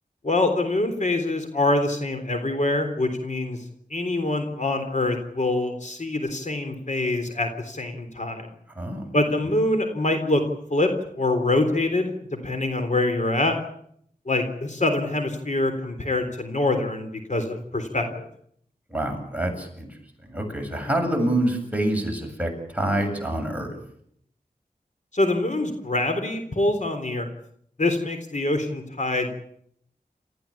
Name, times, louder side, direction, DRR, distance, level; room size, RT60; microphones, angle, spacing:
voice 1, 0.2-3.6 3.9-8.5 9.1-10.4 10.7-10.9 11.2-12.1 12.4-13.5 14.3-18.3 25.1-27.3 27.8-29.3, left 2 dB, 50° left, 7 dB, 3.6 m, -25 dB
voice 2, 18.9-19.9 20.2-23.7, right 1 dB, 10° right, 2 dB, 7.6 m, -26 dB
29.0 x 15.0 x 8.6 m, 0.69 s
wide cardioid pair, 70°, 16 cm